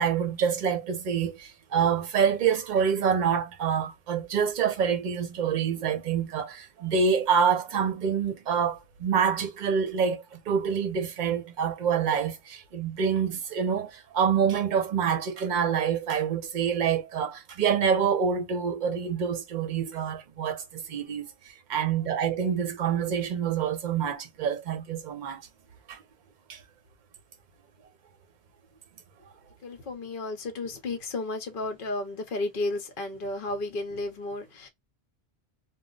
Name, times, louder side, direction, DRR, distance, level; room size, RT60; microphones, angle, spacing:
voice 1, 0.0-25.5 25.9-26.0 26.5-26.6, right 7 dB, 50° right, 0.7 m, -27 dB
voice 2, 29.6-34.7, left 2 dB, 55° left, 0.9 m, -33 dB
2.2 x 2.1 x 3.7 m
omnidirectional pair, 1.1 m